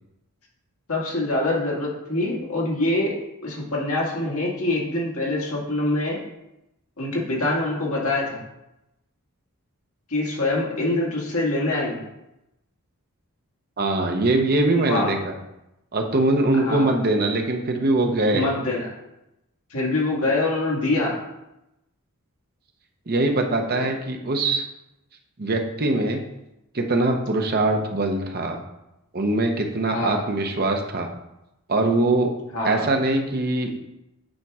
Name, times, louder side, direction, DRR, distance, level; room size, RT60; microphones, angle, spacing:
voice 1, 0.9-3.1 3.4-6.2 7.0-8.4 10.1-12.0 14.7-15.1 16.5-16.9 18.3-18.9 19.7-21.2 23.7-23.8 27.8-27.9 29.9-30.2 32.5-32.9, left 2 dB, 75° left, -3 dB, 1.9 m, -25 dB
voice 2, 13.8-15.3 15.9-18.5 23.1-24.6 25.4-26.2 26.7-28.6 29.1-31.1 31.7-32.3 32.6-33.7, right 2 dB, 45° right, 3 dB, 0.8 m, -22 dB
8.9 x 4.6 x 3.6 m, 0.90 s
head